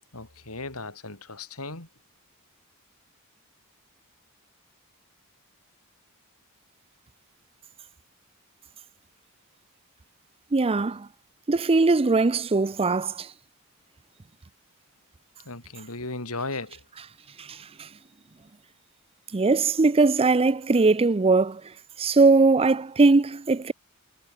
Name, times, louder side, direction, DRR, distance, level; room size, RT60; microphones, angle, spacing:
voice 1, 0.1-1.9 15.5-16.8, left 3 dB, 80° left, 5.8 m, -36 dB
voice 2, 10.5-11.1 11.5-13.3 17.4-17.5 19.3-21.6 22.0-23.7, right 3 dB, 25° right, 0.5 m, -20 dB
head